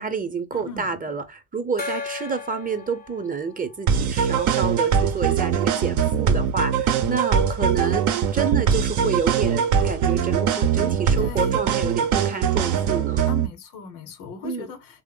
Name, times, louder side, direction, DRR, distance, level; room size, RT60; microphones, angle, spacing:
voice 1, 0.0-13.3 14.4-14.7, right 5 dB, 25° right, 0.8 m, -29 dB
voice 2, 0.5-0.9 11.2-11.7 13.3-15.0, left 5 dB, 70° left, 0.9 m, -38 dB
Gong, 1.8-5.0, left 4 dB, 25° left, 0.6 m, -37 dB
sound 1, 3.9-13.5, right 7 dB, 55° right, 0.7 m, -22 dB
3.2 x 2.1 x 3.7 m
hypercardioid pair, 55°, 34 cm